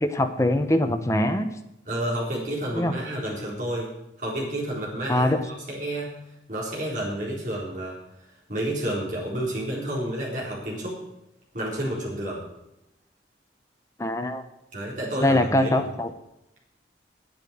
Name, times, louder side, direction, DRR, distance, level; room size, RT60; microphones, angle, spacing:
voice 1, 0.0-1.5 2.8-2.9 5.1-5.4 14.0-14.4 15.2-16.1, left 1 dB, 15° left, 6 dB, 0.9 m, -23 dB
voice 2, 1.9-3.9 4.2-6.2 6.5-8.0 8.5-11.0 11.5-12.4 14.7-15.8, right 1 dB, 45° right, -4 dB, 3.9 m, -30 dB
9.0 x 8.9 x 8.0 m, 0.86 s
head